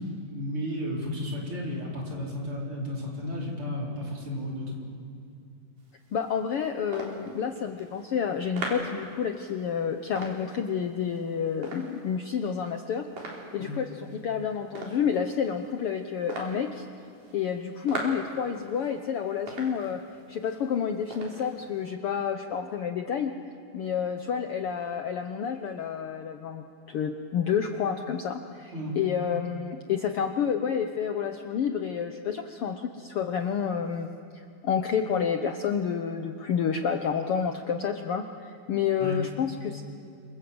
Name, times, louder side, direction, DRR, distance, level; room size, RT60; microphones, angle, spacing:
voice 1, 0.0-4.7 13.6-13.8 28.7-29.0 39.0-39.2, left 1 dB, 40° right, -3 dB, 5.1 m, -33 dB
sound 1, 5.8-21.9, right 2 dB, 70° right, 5.4 m, -42 dB
voice 2, 6.1-16.8 17.3-20.0 20.3-23.3 23.7-39.8, left 7 dB, 85° left, 6 dB, 1.2 m, -29 dB
27.5 x 27.0 x 7.9 m, 2.4 s
omnidirectional pair, 3.8 m